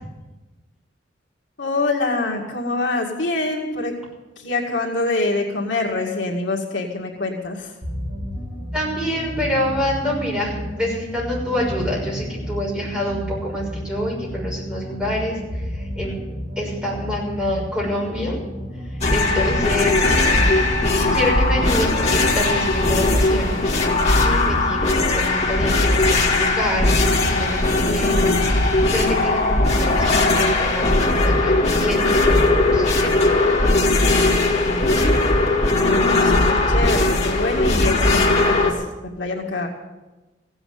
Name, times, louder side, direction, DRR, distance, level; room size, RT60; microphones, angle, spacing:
voice 1, 1.6-3.9 4.4-7.7 34.6-35.1 35.8-38.9 39.2-39.7, left 2 dB, 75° left, 0 dB, 2.1 m, -25 dB
sound 1, 7.8-23.2, equal, 55° right, 5.8 m, -32 dB
voice 2, 8.7-16.2 16.6-18.4 18.9-20.4 21.1-23.6 24.1-26.9 27.3-33.1, equal, 5° right, -5 dB, 6.4 m, -27 dB
sound 2, 19.0-38.7, left 2 dB, 35° left, 2.1 m, -18 dB
16.0 x 7.9 x 9.4 m, 1.1 s
head